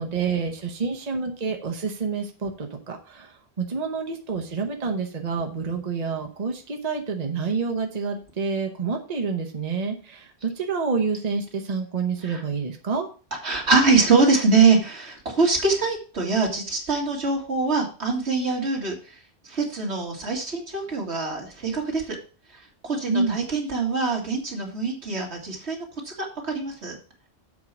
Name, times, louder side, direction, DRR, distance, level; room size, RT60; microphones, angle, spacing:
voice 1, 0.0-13.1 23.1-23.4, right 5 dB, 40° right, 4 dB, 1.0 m, -28 dB
voice 2, 13.4-19.2 19.4-22.2 22.8-27.0, right 4 dB, 80° right, 0 dB, 2.3 m, -23 dB
7.4 x 4.7 x 5.9 m, 0.36 s
omnidirectional pair, 1.1 m